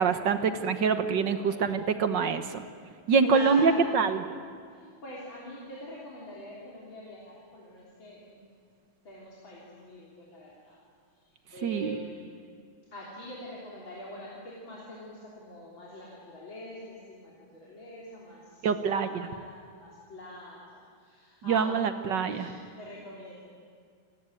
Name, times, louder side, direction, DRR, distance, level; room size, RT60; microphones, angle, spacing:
voice 1, 0.0-2.6 3.1-4.2 11.6-12.0 18.6-19.1 21.5-22.5, right 5 dB, 60° right, 10 dB, 1.7 m, -25 dB
voice 2, 1.2-1.8 3.2-3.9 4.7-8.4 9.0-10.8 11.2-12.3 12.9-23.5, equal, 65° left, -5 dB, 4.3 m, -44 dB
28.5 x 19.0 x 9.1 m, 2.1 s
omnidirectional pair, 2.3 m